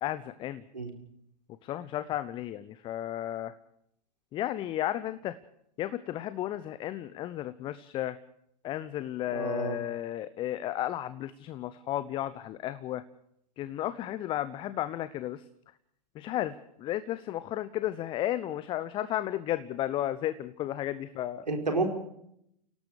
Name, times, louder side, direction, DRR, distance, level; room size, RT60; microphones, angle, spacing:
voice 1, 0.0-0.6 1.6-3.5 4.3-5.4 5.8-8.2 8.6-13.0 13.6-15.4 16.1-21.5, left 13 dB, 25° left, 14 dB, 0.8 m, -33 dB
voice 2, 9.3-9.7 21.5-21.9, right 3 dB, 80° right, 3 dB, 4.8 m, -30 dB
29.0 x 18.0 x 4.9 m, 0.75 s
figure-of-eight pair, 105°, 21 cm